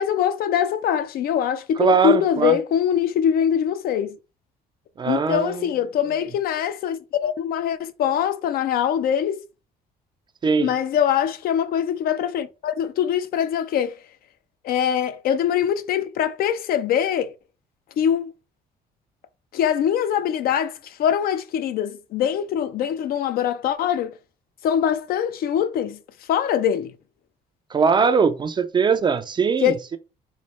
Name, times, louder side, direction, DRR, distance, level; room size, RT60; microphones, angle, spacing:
voice 1, 0.0-4.2 5.0-9.4 10.6-14.0 14.6-17.3 18.0-18.3 19.5-24.1 24.6-26.0 26.3-26.9 29.6-29.7, left 9 dB, 60° left, 0.4 m, -23 dB
voice 2, 1.8-2.6 5.0-5.7 10.4-10.7 27.7-30.0, right 5 dB, 25° right, 0.4 m, -20 dB
3.2 x 2.0 x 4.1 m
cardioid pair, 110°, 17 cm